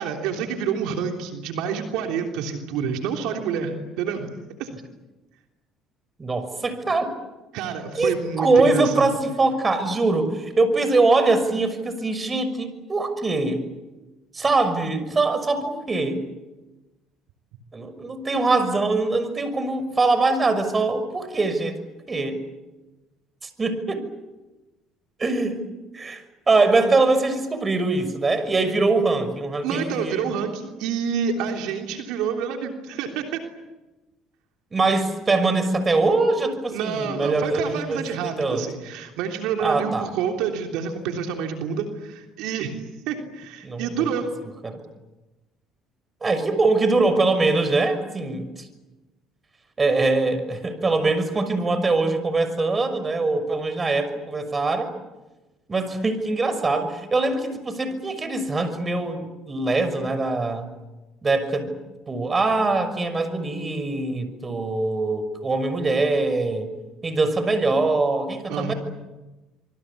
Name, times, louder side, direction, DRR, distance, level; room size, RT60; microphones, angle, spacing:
voice 1, 0.0-4.3 4.6-4.7 7.5-9.1 29.6-33.4 36.7-42.7 43.1-44.3 68.5-68.7, right 7 dB, 80° right, 3 dB, 3.3 m, -28 dB
voice 2, 6.2-7.1 8.0-13.6 14.3-16.3 17.7-21.8 22.1-22.4 23.6-24.1 25.2-25.6 25.9-30.3 34.7-38.6 39.6-40.1 43.6-44.1 44.6-44.8 46.2-48.7 49.8-54.9 55.7-60.7 61.2-61.8 62.1-66.7 67.0-68.7, right 3 dB, 25° right, 10 dB, 6.1 m, -23 dB
26.5 x 24.0 x 8.6 m, 1.1 s
supercardioid pair, 75°, 0 cm